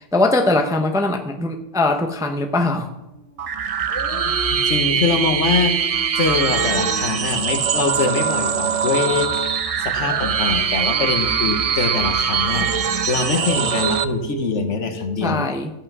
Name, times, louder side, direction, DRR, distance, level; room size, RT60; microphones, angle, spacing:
voice 1, 0.0-2.9 15.2-15.7, left 2 dB, 5° right, 5 dB, 0.5 m, -21 dB
Dog, 1.9-3.5 3.9-8.9 10.0-15.2, right 1 dB, 15° left, 1.4 m, -36 dB
sound 1, 3.4-14.0, right 7 dB, 55° right, 0.4 m, -22 dB
voice 2, 4.3-5.9 6.2-12.7 13.1-15.5, left 5 dB, 70° left, 7 dB, 1.4 m, -23 dB
14.0 x 5.6 x 6.0 m, 0.94 s
omnidirectional pair, 1.3 m